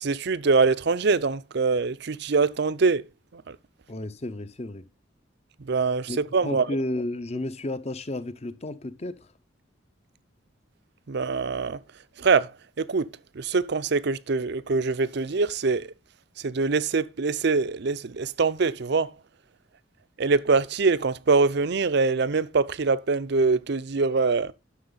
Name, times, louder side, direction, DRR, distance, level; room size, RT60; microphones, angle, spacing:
voice 1, 0.0-3.0 3.3-3.6 5.6-6.7 11.1-11.8 12.2-12.5 12.8-13.1 13.4-15.9 16.4-19.1 20.2-24.5, right 4 dB, 55° right, 0.6 m, -24 dB
voice 2, 3.9-4.9 6.1-6.2 6.4-9.3, left 1 dB, 35° left, 0.8 m, -32 dB
11.5 x 6.7 x 4.0 m
head